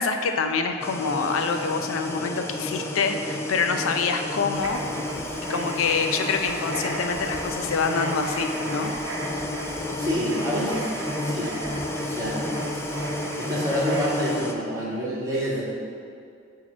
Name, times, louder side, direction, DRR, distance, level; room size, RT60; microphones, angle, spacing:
voice 1, 0.0-4.8 5.5-8.9, left 5 dB, 85° left, 6 dB, 0.4 m, -26 dB
sound 1, 0.8-14.5, left 2 dB, 15° left, 0.3 m, -31 dB
Writing, 4.5-14.4, right 2 dB, 75° right, 0.8 m, -36 dB
voice 2, 10.0-10.9 11.2-11.7 12.0-12.4 13.4-15.8, equal, 15° right, -8 dB, 1.4 m, -27 dB
7.1 x 2.8 x 5.9 m, 2.4 s
head